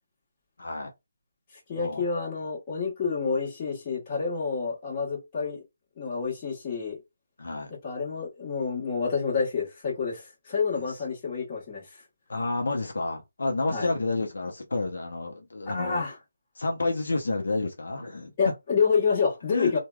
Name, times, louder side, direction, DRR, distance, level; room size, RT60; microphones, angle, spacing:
voice 1, 0.6-0.9 1.8-2.0 7.4-7.7 10.7-10.8 12.3-16.0 16.6-18.3 19.5-19.8, left 2 dB, 70° left, 0.6 m, -30 dB
voice 2, 1.7-5.6 6.0-7.0 7.8-11.8 13.7-13.9 15.7-16.1 18.4-19.8, left 5 dB, 25° left, 1.2 m, -28 dB
3.2 x 2.2 x 2.2 m
figure-of-eight pair, 165°, 0 cm